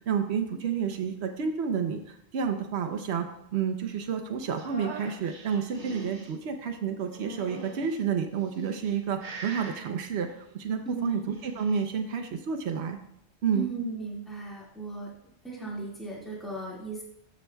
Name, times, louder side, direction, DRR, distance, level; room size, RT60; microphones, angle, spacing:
voice 1, 0.1-3.3 3.5-10.3 10.5-13.0 13.4-13.7, right 7 dB, 80° right, 5 dB, 1.0 m, -30 dB
sound 1, 4.6-6.3 7.1-8.0 8.6-8.9 9.2-9.8 11.1-11.9, right 3 dB, 50° right, 1.2 m, -42 dB
voice 2, 10.9-11.2 13.5-15.1 15.4-17.0, right 3 dB, ahead, -6 dB, 1.8 m, -36 dB
13.0 x 6.2 x 2.2 m, 0.74 s
omnidirectional pair, 1.1 m